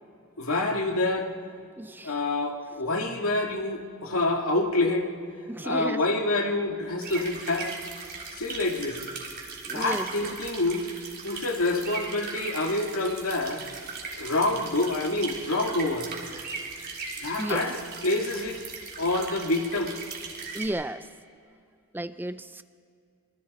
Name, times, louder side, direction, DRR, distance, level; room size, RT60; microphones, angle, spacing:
voice 1, 0.4-1.3 2.0-5.1 5.6-7.8 8.4-9.0 9.7-10.9 11.2-13.6 14.2-16.1 17.2-18.6 19.0-19.9, left 2 dB, 85° left, 2 dB, 2.2 m, -27 dB
voice 2, 1.8-2.1 5.5-6.0 9.6-10.3 17.4-17.7 20.5-21.0 21.9-22.6, right 1 dB, 10° right, 12 dB, 0.5 m, -33 dB
sound 1, 7.0-20.7, right 4 dB, 50° right, 3.6 m, -39 dB
26.0 x 24.5 x 4.3 m, 2.3 s
head